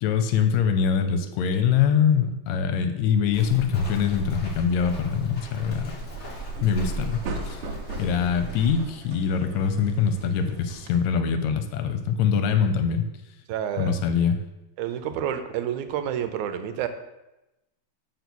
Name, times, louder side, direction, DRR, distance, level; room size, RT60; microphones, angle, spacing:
voice 1, 0.0-5.9 6.6-7.2 7.5-7.6 8.0-13.1 13.8-14.4, left 7 dB, 75° left, 8 dB, 1.9 m, -23 dB
Walk footsteps, 3.3-8.8, right 1 dB, 55° left, 0.7 m, -37 dB
sound 1, 6.0-11.0, right 2 dB, 65° right, 1.6 m, -38 dB
voice 2, 13.5-13.9 14.8-16.9, right 9 dB, 90° right, 9 dB, 2.1 m, -29 dB
6.8 x 4.7 x 6.0 m, 0.95 s
omnidirectional pair, 3.3 m